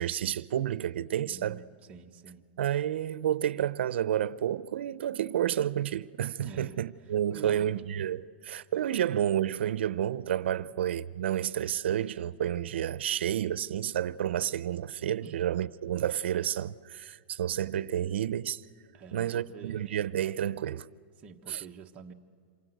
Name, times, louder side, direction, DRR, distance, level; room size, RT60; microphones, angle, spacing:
voice 1, 0.0-1.6 2.6-18.6 19.1-20.9 21.5-21.6, right 10 dB, 75° right, 0.7 m, -30 dB
voice 2, 1.2-2.5 6.4-6.8 7.3-7.9 10.5-10.8 15.2-15.4 18.9-20.0 21.2-22.1, right 5 dB, 20° right, 1.3 m, -48 dB
27.5 x 24.5 x 8.0 m
supercardioid pair, 165°, 6 cm